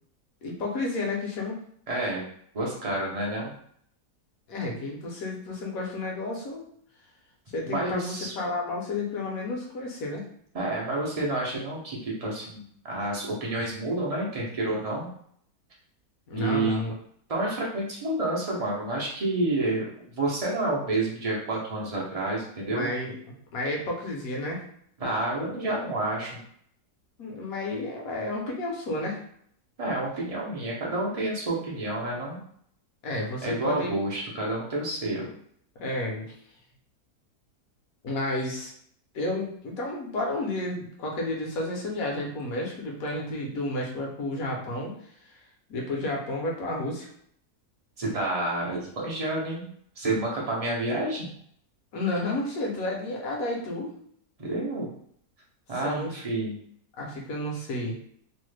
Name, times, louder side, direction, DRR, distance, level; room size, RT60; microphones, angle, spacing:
voice 1, 0.4-1.6 4.5-6.7 7.5-10.2 16.3-16.9 22.6-24.6 27.2-29.2 33.0-33.9 35.8-36.3 38.0-38.7 39.1-44.9 45.2-45.4 45.7-47.1 51.9-53.9 55.8-56.2 57.0-58.0, left 2 dB, 65° left, -1 dB, 1.2 m, -31 dB
voice 2, 1.9-2.2 2.5-3.5 7.7-8.3 10.5-15.1 16.3-16.8 17.3-22.9 25.0-26.4 29.8-32.4 33.4-35.3 48.0-49.7 50.0-51.3 54.4-54.9 55.7-56.6, right 2 dB, 60° right, -4 dB, 0.3 m, -29 dB
3.0 x 2.1 x 3.2 m, 0.64 s
omnidirectional pair, 1.7 m